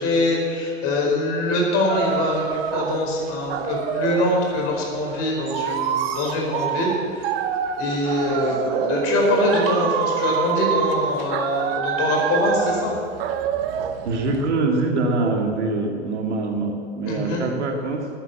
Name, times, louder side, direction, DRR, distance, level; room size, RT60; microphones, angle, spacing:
voice 1, 0.0-7.3 7.8-12.9 17.1-17.4, left 2 dB, 40° left, -1 dB, 4.7 m, -23 dB
sound 1, 1.9-4.4 5.0-14.5, right 8 dB, 50° right, 1.2 m, -26 dB
voice 2, 14.0-18.1, right 3 dB, 70° right, 2 dB, 2.5 m, -24 dB
14.5 x 9.8 x 7.6 m, 2.3 s
figure-of-eight pair, 95°, 36 cm